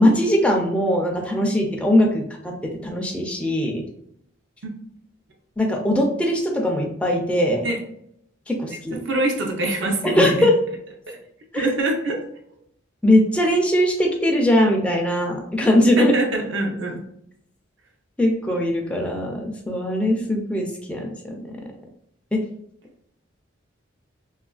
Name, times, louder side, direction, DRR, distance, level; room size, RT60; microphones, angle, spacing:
voice 1, 0.0-2.5 2.8-3.8 5.6-7.6 8.5-9.0 10.0-10.5 11.5-11.7 13.0-16.1 18.2-21.4 22.3-22.4, left 1 dB, 5° left, 0 dB, 0.3 m, -20 dB
voice 2, 9.0-10.5 11.1-11.2 11.6-12.2 16.0-17.0, right 2 dB, 65° right, 2 dB, 0.6 m, -24 dB
3.0 x 2.4 x 2.3 m, 0.73 s
head